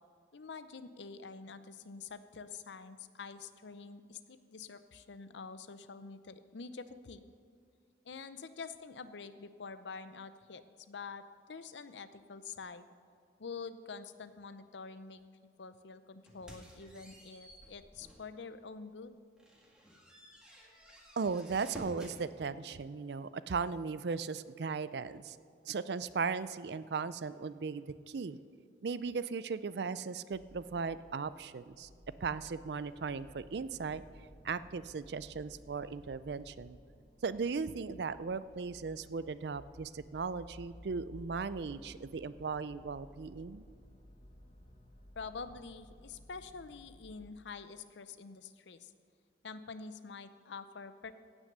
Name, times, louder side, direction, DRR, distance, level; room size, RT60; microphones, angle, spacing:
voice 1, 0.3-7.3 8.0-12.9 13.4-15.2 15.6-19.2 45.2-48.9 49.4-51.1, left 5 dB, 80° left, 12 dB, 0.6 m, -47 dB
sound 1, 16.3-18.3 18.8-18.9 19.4-22.2, equal, 5° right, 1.7 m, -53 dB
voice 2, 21.2-25.4 25.6-28.4 28.8-31.9 32.2-34.0 34.4-36.8 37.2-43.6, right 5 dB, 70° right, 15 dB, 0.4 m, -37 dB
sound 2, 30.3-47.3, equal, 30° left, 1.0 m, -57 dB
16.5 x 6.3 x 6.7 m, 2.2 s
head